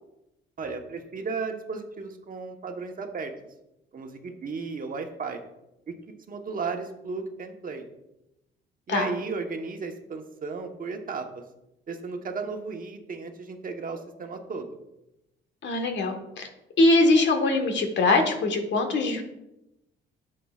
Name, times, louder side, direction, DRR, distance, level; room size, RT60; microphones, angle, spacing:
voice 1, 0.6-3.3 3.9-5.4 5.9-6.0 6.3-7.8 8.9-11.4 11.9-14.8, right 4 dB, 45° right, 4 dB, 1.1 m, -34 dB
voice 2, 15.6-16.5 16.8-19.3, left 2 dB, 65° left, 4 dB, 1.5 m, -22 dB
11.0 x 7.6 x 2.4 m, 0.89 s
cardioid pair, 90°, 20 cm